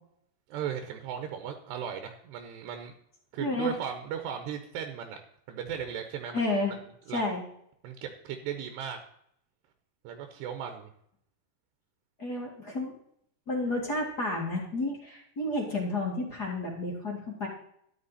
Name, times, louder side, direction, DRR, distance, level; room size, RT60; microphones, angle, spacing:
voice 1, 0.5-2.9 3.3-5.2 5.5-6.8 7.1-7.2 7.8-9.0 10.0-10.9, right 8 dB, 85° right, 6 dB, 3.2 m, -37 dB
voice 2, 3.4-3.7 6.3-6.7 7.1-7.4 12.2-12.9 13.5-17.5, left 2 dB, 30° left, -1 dB, 2.3 m, -31 dB
13.5 x 11.0 x 4.2 m, 0.69 s
omnidirectional pair, 4.8 m